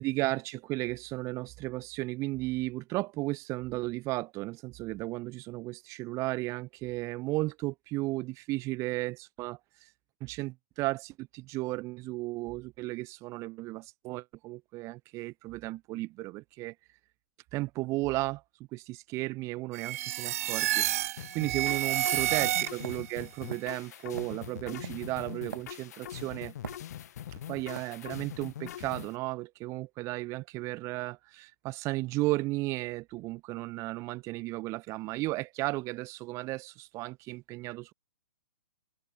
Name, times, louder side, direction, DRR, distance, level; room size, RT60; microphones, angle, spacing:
voice 1, 0.0-9.9 10.2-16.7 17.5-18.4 18.7-26.5 27.3-37.9, right 20 dB, 30° right, 1.6 m, -34 dB
sound 1, 19.7-23.1, right 14 dB, 45° right, 0.9 m, -30 dB
sound 2, 21.2-29.2, left 11 dB, 55° left, 2.5 m, -43 dB
sound 3, 22.8-26.1 26.6-27.3 27.8-28.0, right 6 dB, 70° right, 1.7 m, -43 dB
figure-of-eight pair, 125°, 11 cm